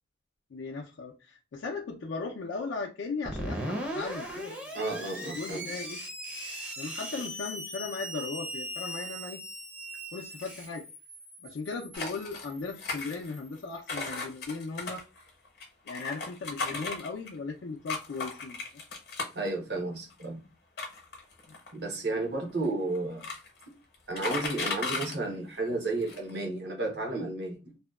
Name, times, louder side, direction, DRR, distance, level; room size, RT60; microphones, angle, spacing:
voice 1, 0.5-4.9 5.3-6.0 6.8-9.4 10.1-10.9 11.4-15.0 15.9-18.6 21.5-21.6, left 4 dB, 75° left, 0.4 m, -37 dB
Screech, 3.2-13.7, equal, 5° right, 0.5 m, -39 dB
voice 2, 4.7-5.7 19.3-20.4 21.7-23.3 24.1-27.7, right 2 dB, 60° right, 0.8 m, -32 dB
sound 1, 11.9-12.5 12.8-13.6 13.9-17.4 17.9-19.5 20.1-20.2 20.8-21.8 22.6-22.7 22.9-23.6 23.9-25.1 25.7-25.8 26.0-26.3, left 3 dB, 55° left, 0.8 m, -35 dB
2.7 x 2.1 x 2.2 m
head